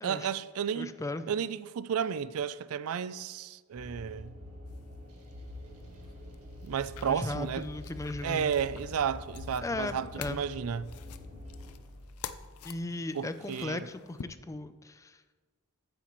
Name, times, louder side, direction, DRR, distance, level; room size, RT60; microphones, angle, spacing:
voice 1, 0.0-0.9 1.3-4.3 6.6-7.7 8.2-10.9 13.1-13.9, right 7 dB, 70° right, 0.4 m, -32 dB
voice 2, 0.8-1.3 7.1-8.5 9.6-10.4 12.6-15.2, left 2 dB, 15° left, 0.3 m, -37 dB
sound 1, 3.8-11.7, left 1 dB, 85° right, 1.7 m, -46 dB
sound 2, 4.6-14.2, left 7 dB, 80° left, 0.5 m, -49 dB
sound 3, 5.4-12.5, equal, 45° right, 3.1 m, -54 dB
15.0 x 8.6 x 3.0 m
head